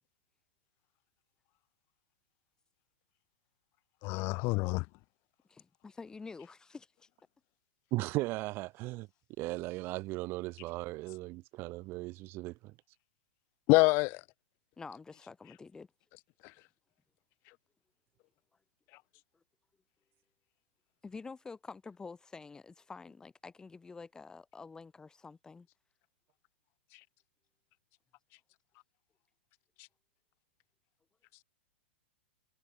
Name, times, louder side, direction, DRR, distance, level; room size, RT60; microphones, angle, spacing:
voice 1, 4.0-4.9 13.7-14.2 16.4-16.5 26.9-27.0 29.8-29.9, left 26 dB, 40° left, 0.4 m, -27 dB
voice 2, 5.5-7.1 14.8-15.9 21.0-25.7, left 4 dB, 10° left, 1.5 m, -48 dB
voice 3, 7.9-9.1 9.4-12.7, right 20 dB, 40° right, 1.9 m, -37 dB
hypercardioid pair, 120°, 6 cm